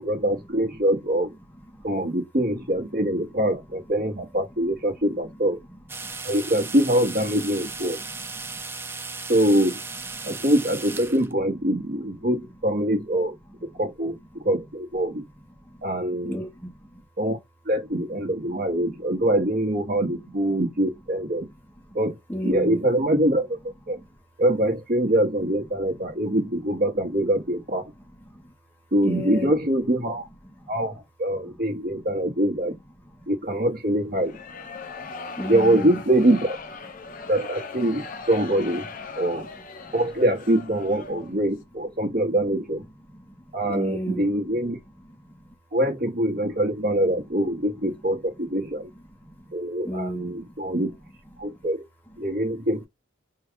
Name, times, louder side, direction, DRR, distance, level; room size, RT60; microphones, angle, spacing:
voice 1, 0.0-1.3 1.8-5.6 6.2-8.0 9.3-9.8 10.2-13.3 13.8-15.2 15.8-16.4 17.2-17.4 17.6-21.5 21.9-22.2 22.4-24.0 24.4-27.9 28.9-30.3 30.7-32.7 33.3-34.4 35.5-36.6 37.3-39.5 39.9-42.8 43.5-44.8 45.7-48.9 49.5-50.9 51.4-51.9 52.2-52.9, right 1 dB, 50° right, 1.0 m, -24 dB
sound 1, 5.9-11.3, right 4 dB, 10° right, 0.3 m, -36 dB
voice 2, 8.1-8.6 10.2-10.4 15.6-15.8 16.2-17.0 18.8-18.9 21.9-22.0 22.3-22.8 23.9-24.1 28.3-28.5 29.0-29.5 30.6-30.7 31.4-31.6 33.2-33.3 34.7-35.1 35.4-36.0 37.0-37.3 39.8-39.9 43.1-44.3 45.2-45.5 48.7-48.8 49.2-49.5 49.8-50.3 51.4-51.6, equal, 10° left, 0.8 m, -35 dB
sound 2, 34.2-41.4, left 4 dB, 45° left, 0.6 m, -39 dB
4.6 x 2.3 x 3.6 m
head